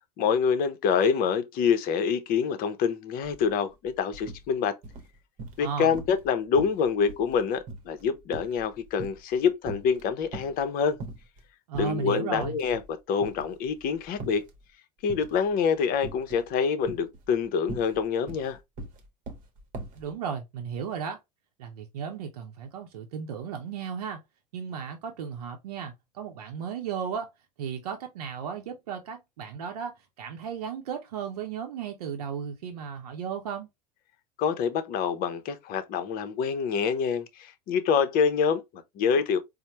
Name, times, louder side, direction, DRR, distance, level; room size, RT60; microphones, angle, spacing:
voice 1, 0.2-4.7 5.6-11.0 11.7-12.8 13.1-14.5 15.0-18.6 34.4-39.4, left 6 dB, 50° left, 0.7 m, -26 dB
sound 1, 3.2-3.4 3.7-4.4 4.8-5.7 5.9-6.3 6.6-9.4 9.6-10.6 11.0-11.4 11.7-11.9 12.3-12.9 13.2-14.6 15.1-15.5 16.0-16.5 16.8-20.0, right 3 dB, 45° right, 0.9 m, -41 dB
voice 2, 5.6-5.9 11.7-12.6 19.9-21.2 21.6-24.2 24.5-27.3 27.6-33.7, right 7 dB, 75° right, 0.6 m, -35 dB
4.2 x 2.1 x 2.9 m
hypercardioid pair, 85°, 20 cm